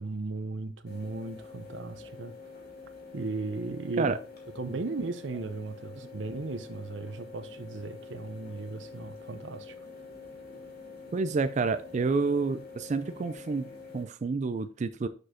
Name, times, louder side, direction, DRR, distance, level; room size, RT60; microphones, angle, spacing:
voice 1, 0.0-2.3 3.1-4.2 4.6-9.8, right 3 dB, 75° right, 0.8 m, -36 dB
sound 1, 0.9-14.0, left 4 dB, 55° left, 2.5 m, -47 dB
voice 2, 11.1-15.1, right 4 dB, 40° right, 0.4 m, -29 dB
6.3 x 5.2 x 3.7 m
head